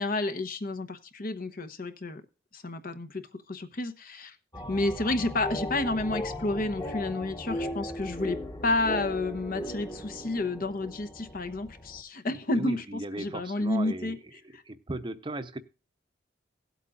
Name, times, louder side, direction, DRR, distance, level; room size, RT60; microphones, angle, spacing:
voice 1, 0.0-2.2 2.5-4.4 4.7-8.4 8.6-12.8 13.2-14.2 14.5-14.6, left 2 dB, 50° left, 9 dB, 0.9 m, -30 dB
sound 1, 4.5-12.0, left 1 dB, 20° left, 1.2 m, -37 dB
voice 2, 12.5-14.1 14.7-15.6, right 2 dB, 25° right, 10 dB, 0.8 m, -36 dB
17.0 x 8.3 x 2.4 m, 0.34 s
head